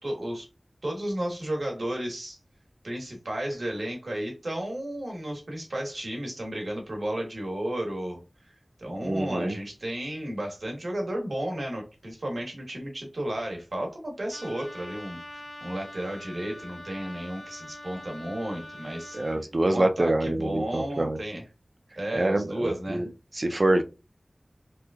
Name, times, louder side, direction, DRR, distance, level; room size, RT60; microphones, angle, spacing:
voice 1, 0.0-0.5 0.8-2.4 2.8-8.2 8.8-19.2 19.7-21.5 22.0-23.1, right 1 dB, 75° right, 1 dB, 1.2 m, -33 dB
voice 2, 9.0-9.5 19.1-21.2 22.1-23.1 23.3-23.8, right 1 dB, 55° right, 7 dB, 0.5 m, -25 dB
Trumpet, 14.3-19.4, left 1 dB, 55° left, 1.6 m, -43 dB
3.4 x 3.1 x 2.3 m, 0.30 s
wide cardioid pair, 50°, 0 cm